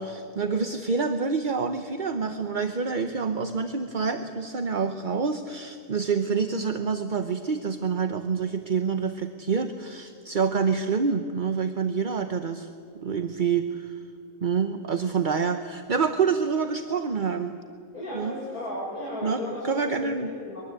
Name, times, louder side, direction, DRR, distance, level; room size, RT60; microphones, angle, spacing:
voice 1, 0.0-12.7 12.9-14.0 14.4-17.6 18.1-18.3 19.2-20.3, right 5 dB, 40° right, 7 dB, 0.9 m, -27 dB
voice 2, 17.9-20.6, left 1 dB, 65° left, -5 dB, 6.6 m, -35 dB
23.0 x 22.5 x 8.2 m, 2.6 s
omnidirectional pair, 1.7 m